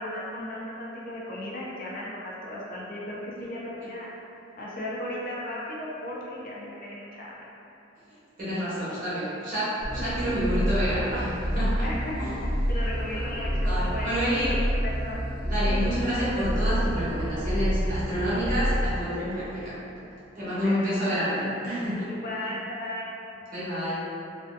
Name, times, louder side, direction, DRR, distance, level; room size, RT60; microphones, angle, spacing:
voice 1, 0.0-4.1 4.6-7.5 10.2-10.3 11.8-12.4 12.7-14.5 15.0-15.2 15.6-15.9 20.4-20.8 21.1-21.2 22.1-23.1, left 1 dB, 50° left, -5 dB, 0.4 m, -36 dB
voice 2, 8.4-11.9 12.2-12.3 13.6-14.6 15.4-19.8 20.3-22.1 23.5-24.0, equal, 50° right, -11 dB, 0.9 m, -28 dB
sound 1, 9.8-18.9, equal, ahead, 1.2 m, -28 dB
2.5 x 2.3 x 2.4 m, 2.8 s
head